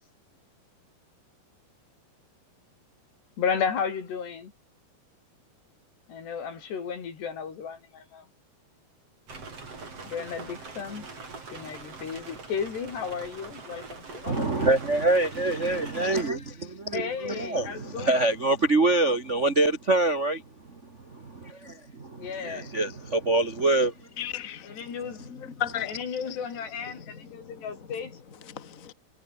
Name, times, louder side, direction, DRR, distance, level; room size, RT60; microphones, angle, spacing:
voice 1, 3.4-4.5 6.1-8.3 10.1-11.1 11.5-14.7 16.9-18.2 22.2-22.7 24.6-25.4 25.9-28.2, left 6 dB, 85° left, 6.7 m, -34 dB
sound 1, 9.3-16.3, right 4 dB, 35° right, 6.1 m, -43 dB
voice 2, 14.3-20.4 21.1-23.9, right 2 dB, 85° right, 0.6 m, -25 dB
voice 3, 24.2-24.9 25.2-25.9 27.0-27.1 27.3-27.6 28.5-28.9, left 10 dB, 25° left, 1.9 m, -35 dB
omnidirectional pair, 4.7 m